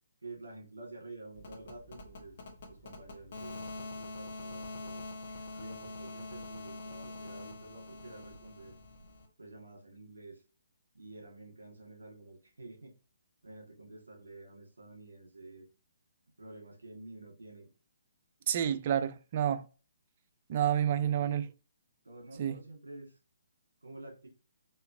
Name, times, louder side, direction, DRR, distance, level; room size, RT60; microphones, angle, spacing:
voice 1, 0.2-2.4 2.7-5.0 5.5-8.7 9.4-10.4 10.9-12.9 13.4-15.7 16.4-17.7 21.0-21.5 22.0-23.2 23.8-24.3, right 2 dB, 70° right, 1.7 m, -49 dB
sound 1, 1.3-9.2, left 2 dB, 50° left, 1.0 m, -45 dB
voice 2, 18.5-19.7 20.5-21.4 22.4-22.6, right 10 dB, 40° right, 0.3 m, -29 dB
4.2 x 2.7 x 2.6 m
figure-of-eight pair, 135°, 0 cm